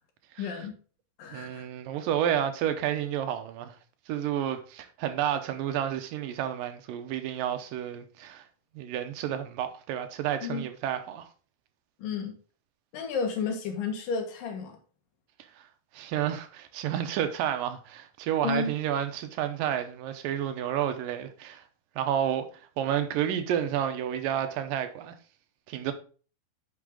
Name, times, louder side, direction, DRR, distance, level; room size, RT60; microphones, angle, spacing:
voice 1, 0.4-0.7 1.2-1.7 10.4-10.6 12.0-12.3 12.9-14.8 18.4-18.7, left 5 dB, 75° left, 3.2 m, -32 dB
voice 2, 1.3-3.8 4.1-8.4 8.8-11.3 15.9-21.6 22.0-22.5 22.8-25.2 25.7-25.9, right 10 dB, 80° right, 2.5 m, -30 dB
9.7 x 5.7 x 3.7 m
omnidirectional pair, 4.0 m